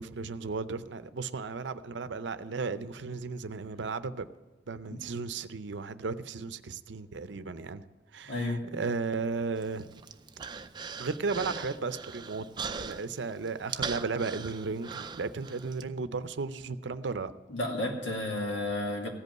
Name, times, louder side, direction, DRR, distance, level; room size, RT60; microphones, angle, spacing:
voice 1, 0.0-4.3 4.7-7.8 8.1-9.8 11.0-17.3, right 4 dB, 75° right, 0.6 m, -35 dB
voice 2, 8.2-8.6 17.5-19.1, left 1 dB, 85° left, 2.5 m, -32 dB
Human voice, 9.6-15.8, right 5 dB, 25° right, 0.4 m, -40 dB
15.5 x 5.3 x 9.3 m
head